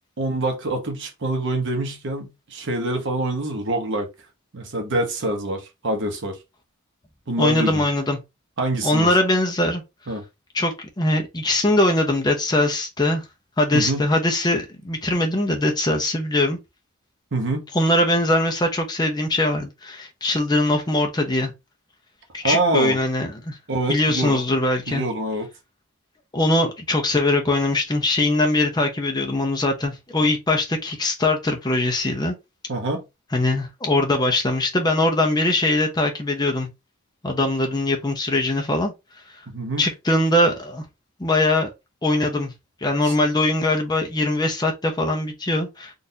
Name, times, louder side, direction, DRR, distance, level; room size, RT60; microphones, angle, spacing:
voice 1, 0.2-4.1 4.5-6.4 7.3-7.8 8.6-9.1 10.1-10.2 13.7-14.0 17.3-17.7 22.4-23.0 23.7-24.4 24.9-25.5 32.7-33.0 39.5-39.9 43.0-43.1, right 2 dB, 60° right, 1.0 m, -25 dB
voice 2, 7.4-8.2 8.8-9.8 10.5-13.2 13.6-16.6 17.7-21.5 22.3-23.6 23.9-25.0 26.3-32.3 33.3-36.7 37.2-38.9 39.8-40.8 41.2-41.7 42.0-42.5 42.8-45.9, left 1 dB, 20° left, 0.6 m, -21 dB
3.8 x 2.5 x 2.7 m
head